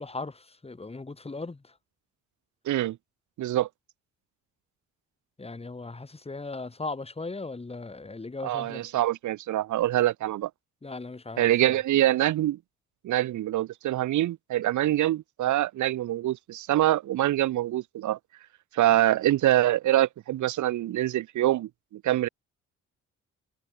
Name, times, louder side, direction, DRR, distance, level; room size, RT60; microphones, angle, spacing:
voice 1, 0.0-1.7 5.4-8.8 10.8-11.5, left 3 dB, 20° left, 3.9 m, -38 dB
voice 2, 2.6-3.0 3.4-3.7 8.4-10.5 11.4-12.6 13.0-18.2 18.7-22.3, right 14 dB, 75° right, 1.3 m, -25 dB
cardioid pair, 90°, 30 cm